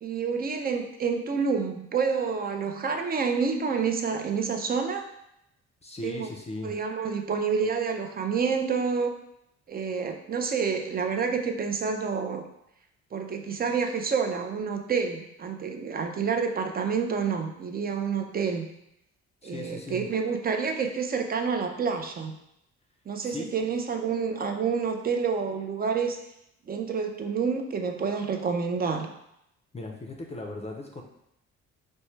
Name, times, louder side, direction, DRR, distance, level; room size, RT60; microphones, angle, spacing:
voice 1, 0.0-5.1 6.0-6.3 6.6-9.1 9.7-12.5 13.1-18.7 19.4-22.4 23.1-26.2 26.7-29.1, right 5 dB, 30° right, 5 dB, 0.5 m, -28 dB
voice 2, 5.8-6.7 19.4-20.1 23.2-23.5 29.7-31.0, left 2 dB, 20° left, 1 dB, 0.5 m, -37 dB
4.3 x 2.2 x 3.1 m, 0.80 s
cardioid pair, 90°, 30 cm